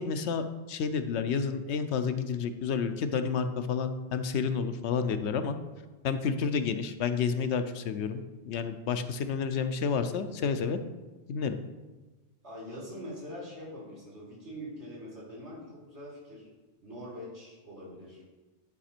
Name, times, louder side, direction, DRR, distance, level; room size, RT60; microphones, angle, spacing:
voice 1, 0.0-5.6 6.0-10.8 11.3-11.6, left 6 dB, 85° left, 9 dB, 0.9 m, -30 dB
voice 2, 12.4-16.5 16.8-18.2, equal, 90° right, -6 dB, 3.6 m, -43 dB
11.0 x 4.9 x 4.4 m, 1.2 s
omnidirectional pair, 1.1 m